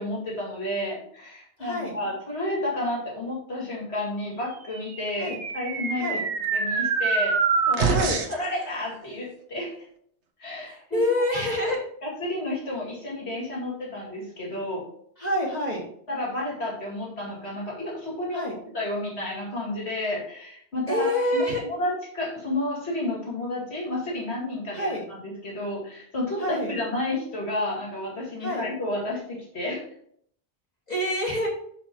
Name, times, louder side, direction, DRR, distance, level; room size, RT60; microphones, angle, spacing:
voice 1, 0.0-6.2 6.5-7.4 7.6-9.7 10.4-11.0 11.3-11.7 12.0-14.8 16.1-18.5 18.7-29.8, left 1 dB, 70° left, -4 dB, 2.7 m, -31 dB
voice 2, 1.6-1.9 5.2-5.4 6.0-6.2 7.9-8.2 10.6-11.8 15.2-15.8 18.3-18.6 20.9-21.6 24.7-25.0 26.4-26.8 28.4-28.7 30.9-31.5, left 1 dB, 40° left, -4 dB, 1.4 m, -27 dB
sound 1, 4.8-8.5, right 5 dB, 80° right, 1.1 m, -25 dB
5.5 x 4.9 x 4.5 m, 0.66 s
omnidirectional pair, 1.1 m